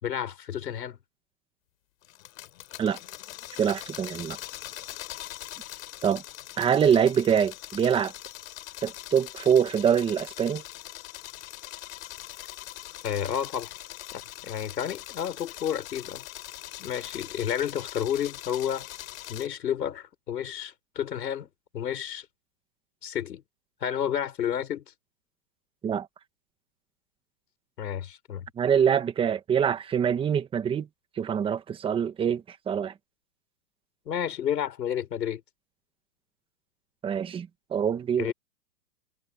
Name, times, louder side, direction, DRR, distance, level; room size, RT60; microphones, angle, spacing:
voice 1, 0.0-1.0 13.0-13.7 14.1-16.2 16.8-18.9 19.3-21.5 21.7-22.3 23.0-23.4 23.8-24.8 27.8-28.5 34.1-35.4 38.2-38.3, left 9 dB, 85° left, 5.5 m, -31 dB
sound 1, 2.0-19.5, left 15 dB, 55° left, 4.3 m, -42 dB
voice 2, 3.6-4.4 6.0-6.2 6.6-8.1 8.8-10.6 25.8-26.1 28.6-30.9 31.2-32.9 37.0-38.3, right 8 dB, 10° right, 1.3 m, -24 dB
hypercardioid pair, 155°, 48 cm